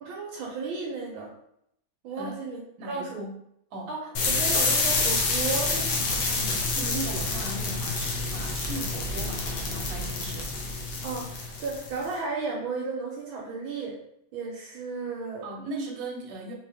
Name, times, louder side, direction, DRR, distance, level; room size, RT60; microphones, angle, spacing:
voice 1, 0.0-1.3 2.0-2.6 2.9-3.2 3.9-6.6 11.0-14.0 14.3-15.5, right 4 dB, 75° right, -2 dB, 1.6 m, -34 dB
voice 2, 2.8-3.4 3.7-3.9 6.7-10.5 15.4-16.5, right 2 dB, 55° right, -1 dB, 1.5 m, -37 dB
sound 1, 4.2-12.1, left 3 dB, 80° left, 1.8 m, -28 dB
4.6 x 3.0 x 3.5 m, 0.74 s
omnidirectional pair, 2.3 m